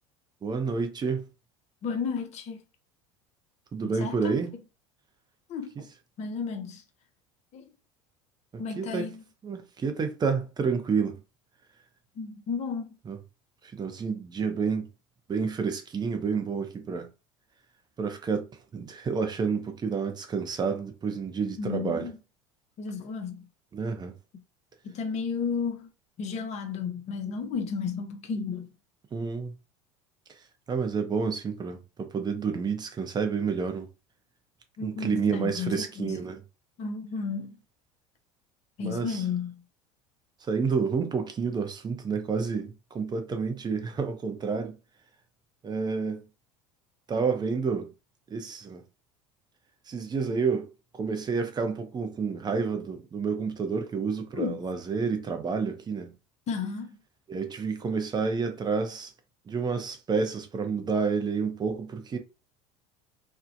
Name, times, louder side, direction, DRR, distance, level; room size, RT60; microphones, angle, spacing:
voice 1, 0.4-1.3 3.7-4.5 8.5-9.2 9.4-11.2 13.1-13.2 13.7-14.9 15.3-17.1 18.0-18.5 18.7-22.1 23.7-24.1 29.1-29.5 30.7-33.9 34.8-36.4 38.8-39.2 40.4-44.8 45.6-46.2 47.1-47.9 48.3-48.8 49.9-56.1 57.3-59.1 59.5-62.2, right 5 dB, 25° right, 0.6 m, -29 dB
voice 2, 1.8-2.6 3.8-4.4 5.5-5.9 6.2-6.8 7.5-7.7 8.6-9.2 12.2-13.0 21.6-22.1 22.8-23.5 24.8-25.9 26.2-28.7 34.8-36.1 36.8-37.6 38.8-39.6 54.3-54.6 56.5-57.0, left 5 dB, 45° left, 0.6 m, -33 dB
2.7 x 2.0 x 2.5 m
hypercardioid pair, 80°, 16 cm